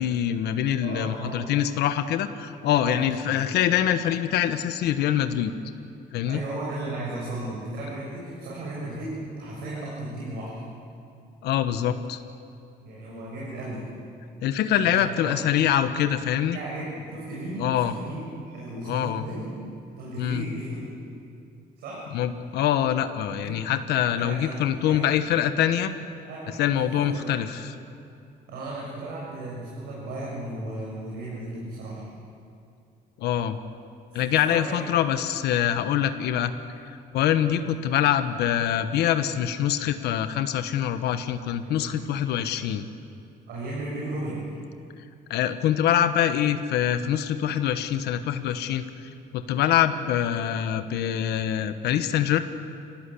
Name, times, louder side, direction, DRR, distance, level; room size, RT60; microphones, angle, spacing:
voice 1, 0.0-5.5 6.1-6.4 11.4-12.2 14.4-16.6 17.6-17.9 18.9-19.3 20.2-20.4 22.1-25.9 26.6-27.8 33.2-33.6 34.1-36.5 37.1-42.9 45.3-52.4, left 10 dB, 80° left, 10 dB, 1.2 m, -24 dB
voice 2, 0.8-1.5 2.8-3.0 3.3-3.4 6.3-10.6 12.8-13.9 14.8-15.3 16.5-19.6 20.0-20.9 21.8-22.1 23.4-23.6 24.1-24.6 24.8-25.1 26.3-27.4 28.5-32.0 34.1-35.0 37.4-37.5 41.6-41.9 43.5-44.5, right 2 dB, 75° right, -5 dB, 6.8 m, -35 dB
25.5 x 18.0 x 8.5 m, 2.6 s
cardioid pair, 110°, 17 cm